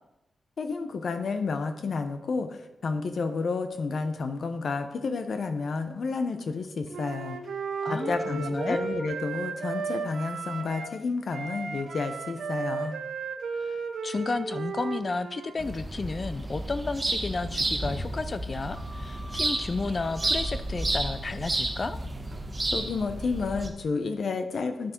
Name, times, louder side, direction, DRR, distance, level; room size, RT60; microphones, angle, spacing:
voice 1, 0.6-7.4 7.9-13.0 22.7-24.9, left 4 dB, 70° left, 7 dB, 0.8 m, -31 dB
Wind instrument woodwind instrument, 6.9-11.0 11.3-15.5, right 5 dB, 75° right, 0.7 m, -34 dB
voice 2, 7.8-8.8 13.6-22.0, left 3 dB, 45° left, 11 dB, 0.4 m, -32 dB
sound 1, 15.6-23.7, right 2 dB, 30° right, 1.3 m, -31 dB
8.7 x 6.2 x 4.5 m, 0.91 s
cardioid pair, 50°, 0 cm